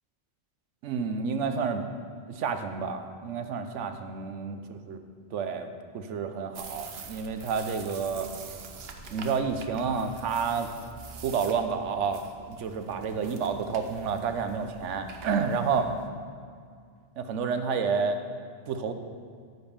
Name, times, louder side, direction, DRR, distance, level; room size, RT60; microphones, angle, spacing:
voice 1, 0.8-1.9 2.3-5.0 5.3-8.3 9.1-10.7 11.2-15.9 17.2-18.2 18.7-18.9, right 5 dB, 90° right, 8 dB, 1.1 m, -30 dB
sound 1, 6.5-16.1, right 5 dB, 60° right, 1.0 m, -45 dB
9.8 x 5.3 x 7.1 m, 2.1 s
omnidirectional pair, 1.2 m